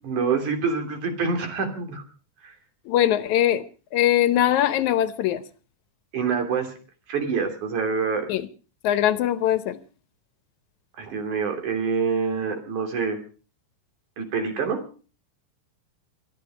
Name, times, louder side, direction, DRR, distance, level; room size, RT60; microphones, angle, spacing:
voice 1, 0.0-2.0 2.4-2.5 6.1-6.8 7.1-8.3 11.0-13.2 14.2-14.8, right 5 dB, 75° right, 6 dB, 4.5 m, -26 dB
voice 2, 2.9-3.6 3.9-5.4 8.3-8.5 8.8-9.8, left 12 dB, 75° left, 13 dB, 2.3 m, -21 dB
22.5 x 12.5 x 5.0 m, 0.38 s
omnidirectional pair, 3.5 m